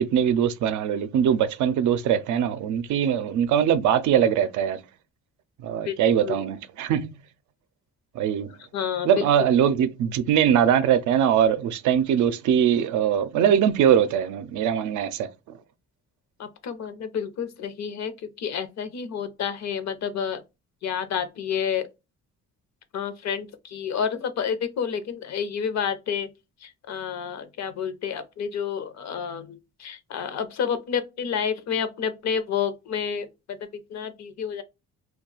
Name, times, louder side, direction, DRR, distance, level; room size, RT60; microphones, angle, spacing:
voice 1, 0.0-4.8 5.6-7.1 8.2-8.5 9.0-15.3, right 9 dB, 75° right, 0.5 m, -22 dB
voice 2, 8.7-9.2 16.4-20.4 20.8-21.9 22.9-26.3 26.9-33.3 33.9-34.6, left 7 dB, 60° left, 0.7 m, -29 dB
2.3 x 2.3 x 3.8 m
cardioid pair, 90°, 30 cm